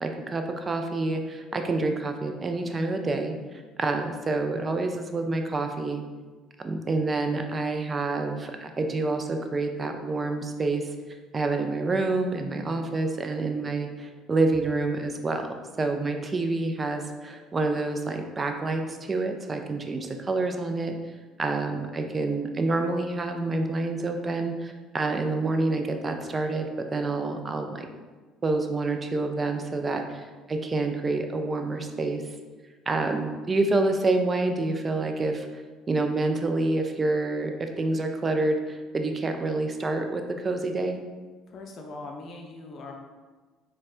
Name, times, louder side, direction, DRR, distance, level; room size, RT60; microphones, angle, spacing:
voice 1, 0.0-3.3 3.8-6.0 6.6-10.9 11.3-15.5 15.8-21.0 21.4-27.9 28.4-32.2 32.9-35.6 35.9-41.0, right 2 dB, 30° right, 5 dB, 0.4 m, -27 dB
voice 2, 41.5-42.9, left 2 dB, 50° left, 2 dB, 0.5 m, -41 dB
4.1 x 2.2 x 2.4 m, 1.3 s
hypercardioid pair, 60°, 0 cm